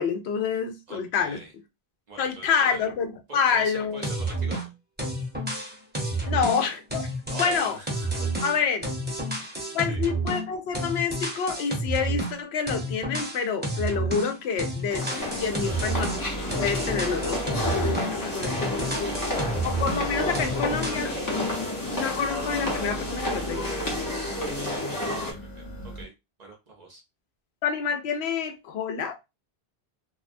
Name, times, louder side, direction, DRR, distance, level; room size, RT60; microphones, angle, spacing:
voice 1, 0.0-1.4 2.2-4.1 6.3-7.1 7.4-7.8 8.4-8.8 9.7-15.1 15.4-16.1 16.6-19.1 19.6-21.1 21.9-23.8 27.6-29.1, left 6 dB, 80° left, 0.8 m, -28 dB
voice 2, 0.9-1.5 2.1-2.8 3.3-4.6 7.3-8.5 9.1-9.4 9.7-10.0 15.4-15.8 18.7-19.3 24.4-24.9 25.3-26.1 26.4-27.0, right 3 dB, 50° right, 0.7 m, -44 dB
sound 1, 4.0-4.7 5.0-10.5 10.7-12.4 12.7-14.3 14.6-18.2 18.4-20.1 20.3-21.1, right 1 dB, 10° right, 0.7 m, -30 dB
sound 2, 14.9-25.3, left 1 dB, 25° left, 0.5 m, -30 dB
sound 3, 15.2-26.0, right 1 dB, 55° left, 1.1 m, -39 dB
2.3 x 2.1 x 2.5 m
omnidirectional pair, 1.1 m